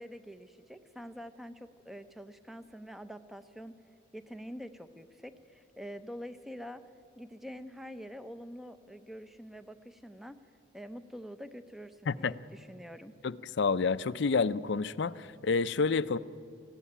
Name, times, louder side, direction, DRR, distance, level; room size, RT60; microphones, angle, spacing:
voice 1, 0.0-3.8 4.1-6.8 7.2-10.4 10.7-13.2, equal, ahead, 11 dB, 0.6 m, -46 dB
voice 2, 13.2-16.2, left 4 dB, 60° left, 16 dB, 0.5 m, -29 dB
18.5 x 14.5 x 10.0 m, 2.5 s
head